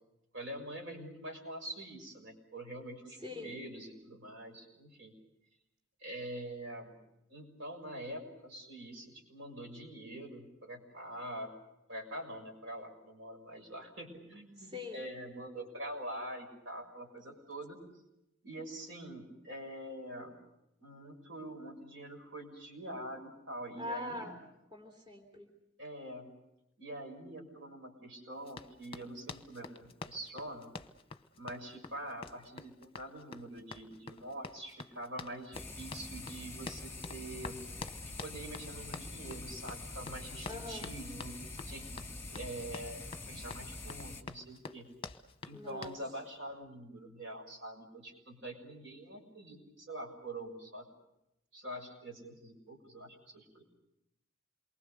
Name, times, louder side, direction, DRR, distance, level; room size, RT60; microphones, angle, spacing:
voice 1, 0.3-5.1 6.0-6.9 7.3-11.5 11.9-17.8 18.4-20.4 20.8-24.3 25.8-26.3 26.8-30.7 31.3-37.6 38.0-41.4 41.7-44.9 45.4-50.9 51.5-53.6, right 1 dB, 75° right, 2 dB, 6.5 m, -45 dB
voice 2, 3.2-3.5 14.7-15.0 23.8-24.3 24.7-25.4 40.5-40.9 45.5-45.9, left 2 dB, 25° right, 2 dB, 3.4 m, -42 dB
Run, 28.5-46.0, left 4 dB, 30° left, 1.0 m, -47 dB
sound 1, 35.5-44.2, left 2 dB, 10° left, 2.1 m, -45 dB
28.0 x 23.5 x 6.7 m, 0.85 s
head